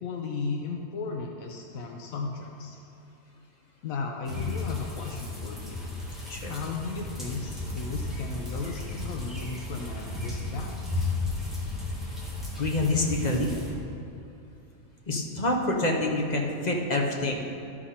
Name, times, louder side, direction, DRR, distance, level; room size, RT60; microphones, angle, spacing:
voice 1, 0.0-2.8 3.8-5.8 6.4-11.1, left 4 dB, 85° left, 1 dB, 1.1 m, -35 dB
sound 1, 4.3-13.7, left 2 dB, ahead, 1.7 m, -34 dB
voice 2, 12.6-13.6 15.1-17.3, left 2 dB, 35° left, 0 dB, 0.9 m, -27 dB
12.5 x 5.0 x 4.2 m, 2.9 s
omnidirectional pair, 1.4 m